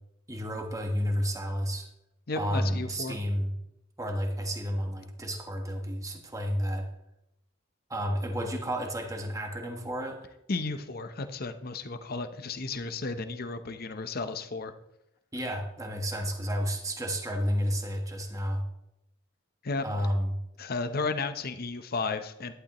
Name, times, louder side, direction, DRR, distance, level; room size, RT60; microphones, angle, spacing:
voice 1, 0.3-1.9 2.3-3.5 4.0-6.9 7.9-10.3 15.3-18.6 19.8-20.4, equal, 15° right, 2 dB, 1.3 m, -31 dB
voice 2, 2.3-3.2 10.5-14.7 19.6-19.8 20.6-22.5, left 3 dB, 50° left, 9 dB, 0.8 m, -33 dB
11.5 x 11.5 x 3.0 m, 0.84 s
head